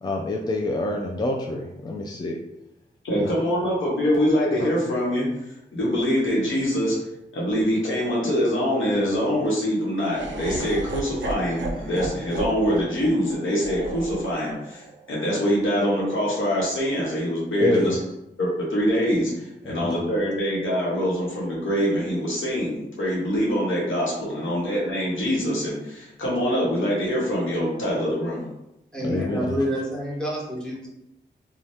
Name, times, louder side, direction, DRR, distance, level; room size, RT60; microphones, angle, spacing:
voice 1, 0.0-2.4 3.1-3.3 17.6-18.0 19.6-20.0 29.0-29.6, left 2 dB, 20° left, 1 dB, 0.4 m, -27 dB
voice 2, 3.0-5.2 5.7-7.0 7.3-18.0 18.4-28.5, equal, 85° left, -5 dB, 1.1 m, -24 dB
Laughter, 10.1-16.2, right 3 dB, 70° right, 0.5 m, -36 dB
voice 3, 28.9-30.9, equal, 5° left, -4 dB, 1.1 m, -28 dB
2.7 x 2.3 x 3.4 m, 0.88 s
cardioid pair, 45°, 20 cm